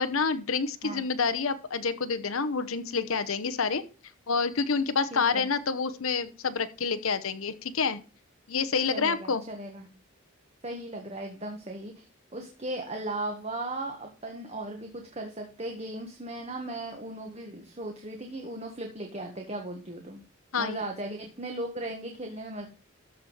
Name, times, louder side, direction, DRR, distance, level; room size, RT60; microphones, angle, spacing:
voice 1, 0.0-3.8 4.3-8.0 8.5-9.4 20.5-20.8, left 5 dB, 85° left, 11 dB, 0.9 m, -28 dB
voice 2, 5.1-5.5 8.9-9.9 10.6-12.1 12.3-20.2 20.6-22.7, right 1 dB, 30° right, 3 dB, 1.5 m, -37 dB
13.5 x 5.0 x 5.6 m, 0.34 s
head